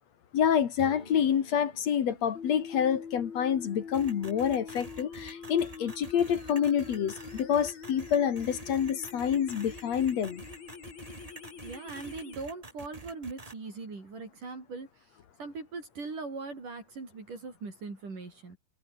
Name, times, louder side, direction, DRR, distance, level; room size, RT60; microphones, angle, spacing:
voice 1, 0.3-10.4, left 8 dB, 55° left, 2.5 m, -27 dB
sound 1, 0.8-4.5, left 1 dB, 10° left, 5.5 m, -51 dB
sound 2, 2.4-12.4, left 6 dB, 75° left, 6.1 m, -45 dB
sound 3, 3.9-13.5, right 2 dB, 15° right, 1.3 m, -47 dB
voice 2, 11.6-15.1 15.4-18.6, right 4 dB, 60° right, 7.8 m, -40 dB
omnidirectional pair, 4.3 m